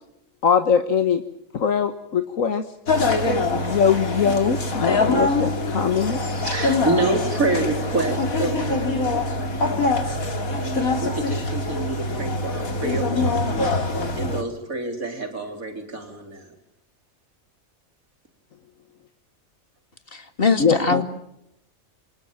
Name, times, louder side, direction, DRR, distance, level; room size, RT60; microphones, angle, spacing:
voice 1, 0.4-1.2 1.5-2.7 3.5-6.2 20.6-21.0, left 7 dB, 70° left, 8 dB, 1.6 m, -21 dB
sound 1, 2.9-14.4, left 2 dB, 90° left, 3.1 m, -24 dB
voice 2, 6.3-9.8 10.5-13.6 14.2-16.5, right 2 dB, 85° right, 5 dB, 4.3 m, -28 dB
voice 3, 20.1-21.0, left 4 dB, 40° left, 9 dB, 2.4 m, -22 dB
28.0 x 25.5 x 7.6 m, 0.83 s
omnidirectional pair, 1.4 m